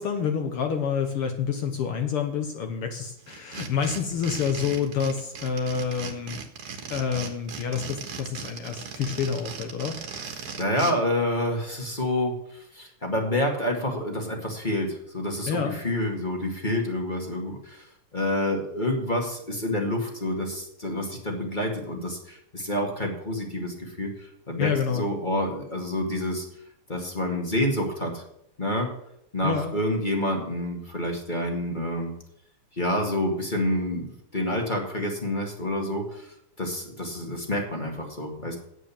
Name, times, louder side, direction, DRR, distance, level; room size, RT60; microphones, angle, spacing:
voice 1, 0.0-6.4 6.9-10.0 15.5-15.8 24.6-25.1 29.4-29.7, left 7 dB, 65° left, 6 dB, 1.5 m, -28 dB
sound 1, 3.3-10.9, right 6 dB, 55° right, 2.1 m, -38 dB
voice 2, 10.4-17.9 18.1-26.4 26.9-28.2 28.6-28.9 29.3-32.1 32.8-38.6, left 1 dB, 20° left, 1 dB, 1.6 m, -28 dB
9.7 x 7.8 x 7.3 m, 0.76 s
omnidirectional pair, 3.4 m